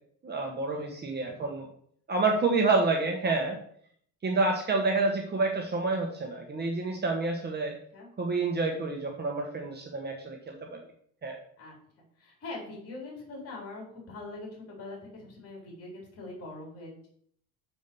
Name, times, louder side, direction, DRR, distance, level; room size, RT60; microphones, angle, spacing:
voice 1, 0.2-1.7 2.1-3.6 4.2-7.7 8.2-10.8 11.2-11.4, right 3 dB, 30° right, 1 dB, 1.4 m, -28 dB
voice 2, 12.2-17.1, left 2 dB, 45° left, -2 dB, 4.0 m, -42 dB
6.9 x 5.0 x 7.0 m, 0.63 s
cardioid pair, 110°, 33 cm